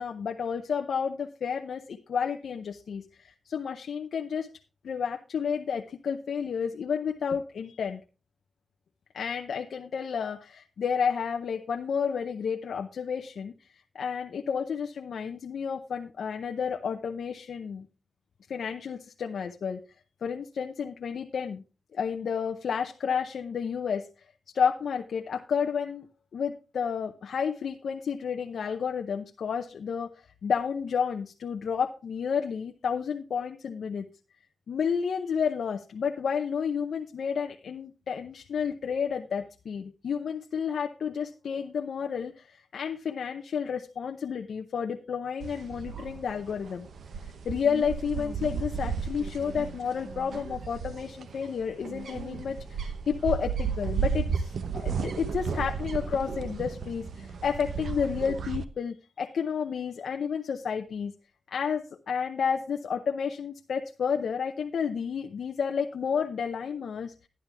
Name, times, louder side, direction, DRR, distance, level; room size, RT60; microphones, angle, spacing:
voice 1, 0.0-4.5 4.8-8.0 9.1-17.9 18.5-19.8 20.2-21.6 21.9-24.1 24.5-26.1 26.3-34.1 34.7-46.9 47.4-61.1 61.5-67.1, left 6 dB, 75° left, 5 dB, 0.7 m, -31 dB
sound 1, 45.4-58.6, right 6 dB, 75° right, 0.8 m, -34 dB
12.0 x 10.5 x 3.4 m, 0.32 s
cardioid pair, 90°, 0 cm